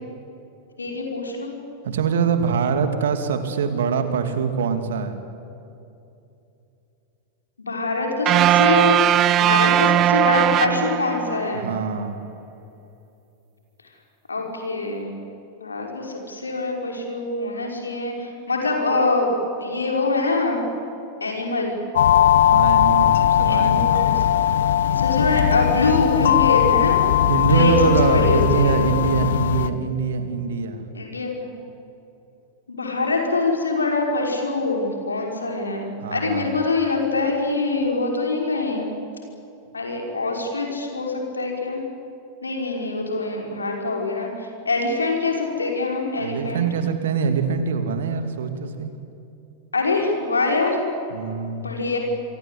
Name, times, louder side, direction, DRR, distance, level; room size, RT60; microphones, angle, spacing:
voice 1, 0.8-1.5 7.6-9.0 9.4-11.7 14.3-15.1 15.6-19.3 19.6-20.6 21.2-21.7 23.5-24.3 24.9-27.0 27.4-28.7 30.9-31.5 32.7-38.9 39.7-41.8 42.4-44.3 44.7-46.6 49.7-50.8 51.6-52.0, left 3 dB, 75° left, 1 dB, 5.5 m, -24 dB
voice 2, 1.8-5.2 11.5-12.2 22.5-24.1 27.2-30.8 36.0-36.6 46.2-48.9 51.1-51.7, right 6 dB, 60° right, 8 dB, 2.7 m, -23 dB
sound 1, 8.3-11.5, right 12 dB, 35° right, 0.7 m, -18 dB
sound 2, 22.0-29.7, left 11 dB, 60° left, 1.1 m, -19 dB
28.0 x 23.5 x 8.5 m, 2.7 s
figure-of-eight pair, 90°, 0 cm